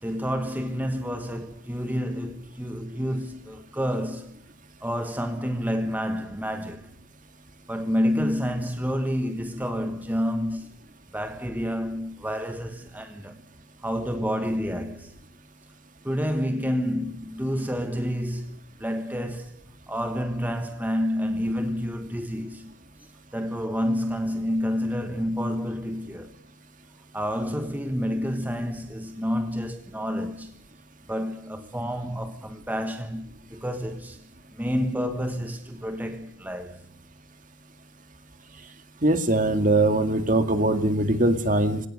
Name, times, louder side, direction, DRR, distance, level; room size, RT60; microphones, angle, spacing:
voice 1, 0.0-4.4 4.8-6.9 7.7-10.7 11.1-13.4 13.8-15.1 16.0-19.5 19.9-22.7 23.3-26.3 27.1-30.5 31.1-34.2 34.6-36.8, equal, 10° right, 1.2 m, -29 dB
voice 2, 39.0-41.8, right 1 dB, 40° right, 2.1 m, -21 dB
20.0 x 17.5 x 9.8 m
head